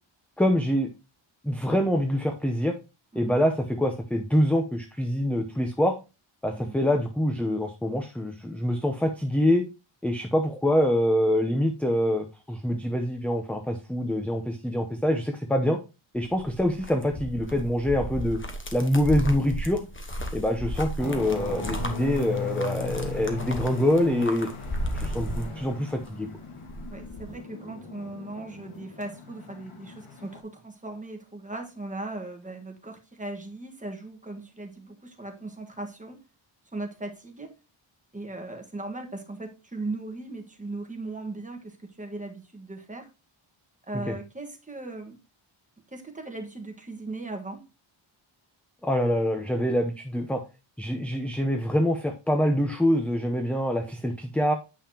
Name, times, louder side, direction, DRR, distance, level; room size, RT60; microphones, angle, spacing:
voice 1, 0.4-0.9 1.4-2.7 3.1-6.0 6.4-9.6 10.0-15.8 16.1-18.4 18.7-19.8 20.3-24.5 24.9-26.3 44.1-44.2 48.8-50.4 50.8-54.5, equal, 5° left, 0.7 m, -25 dB
sound 1, 16.2-26.1 26.4-27.3, equal, 25° left, 1.2 m, -34 dB
sound 2, 21.0-30.4, left 4 dB, 85° left, 2.1 m, -38 dB
voice 2, 26.9-36.2 36.7-37.5 38.1-43.1 43.9-45.2 45.9-47.6, right 2 dB, 15° right, 1.4 m, -38 dB
8.7 x 5.6 x 2.8 m
wide cardioid pair, 135°, 50 cm